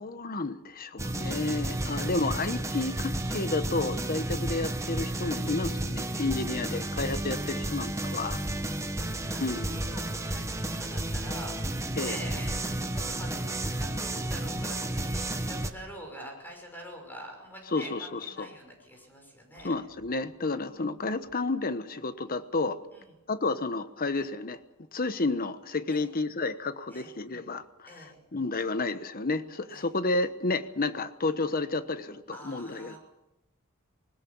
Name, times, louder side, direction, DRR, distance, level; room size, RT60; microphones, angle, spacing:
voice 1, 0.0-8.4 9.4-9.8 12.0-12.2 17.7-18.5 19.6-22.8 23.3-24.6 24.9-28.0 28.3-33.0, left 3 dB, 45° left, 11 dB, 1.1 m, -31 dB
sound 1, 1.0-15.7, right 1 dB, 15° right, 1.1 m, -32 dB
voice 2, 8.3-19.7 22.9-23.1 25.9-26.1 26.9-27.1 27.9-28.2 29.7-29.9 32.3-33.0, equal, 10° left, 1 dB, 5.9 m, -46 dB
Water tap faucet / Sink (filling or washing), 12.4-21.4, left 1 dB, 60° left, 7.6 m, -55 dB
21.0 x 19.5 x 7.0 m, 0.99 s
head